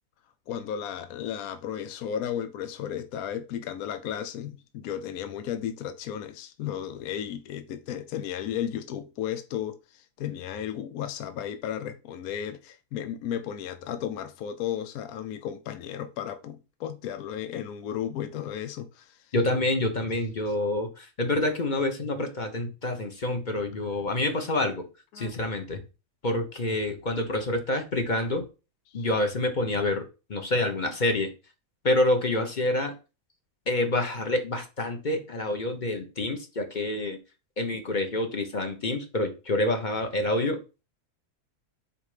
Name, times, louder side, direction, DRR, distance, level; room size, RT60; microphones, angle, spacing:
voice 1, 0.5-19.2 25.1-25.3 28.9-29.1, left 9 dB, 75° left, 1.1 m, -34 dB
voice 2, 19.3-24.9 25.2-25.8 26.2-28.5 28.9-30.0 30.3-31.3 31.8-32.9 33.7-37.2 37.6-40.6, left 1 dB, 35° left, 1.1 m, -27 dB
4.9 x 4.3 x 4.9 m
omnidirectional pair, 1.6 m